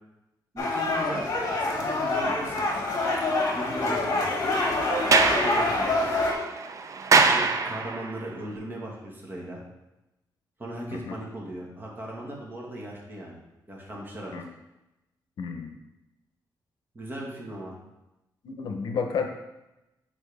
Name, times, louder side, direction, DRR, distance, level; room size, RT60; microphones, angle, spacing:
voice 1, 0.5-1.3 1.6-2.7 3.5-4.0 5.0-5.9 7.3-9.6 10.6-13.4 13.7-14.3 16.9-17.8, right 1 dB, 25° right, -2 dB, 1.5 m, -38 dB
sound 1, 0.6-6.3, left 2 dB, 45° left, 1.3 m, -26 dB
Sliding door, 4.9-8.2, right 4 dB, 45° right, 0.5 m, -24 dB
voice 2, 15.4-15.8 18.4-19.3, left 5 dB, 70° left, 4 dB, 0.7 m, -31 dB
7.4 x 4.2 x 3.4 m, 0.96 s
cardioid pair, 125°, 8 cm